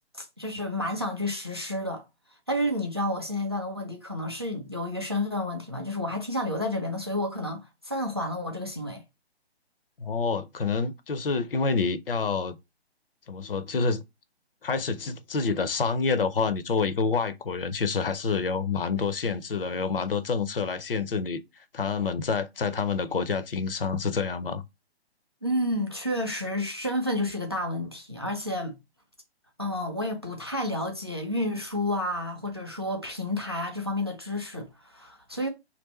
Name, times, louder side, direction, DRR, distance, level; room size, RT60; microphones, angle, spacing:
voice 1, 0.1-2.0 2.5-9.0 25.4-28.8 29.6-35.5, left 1 dB, 25° right, 0.4 m, -30 dB
voice 2, 10.0-12.6 13.3-14.0 14.6-21.4 21.7-24.6, left 5 dB, 55° left, 0.5 m, -27 dB
3.0 x 2.6 x 4.2 m
figure-of-eight pair, 140°, 33 cm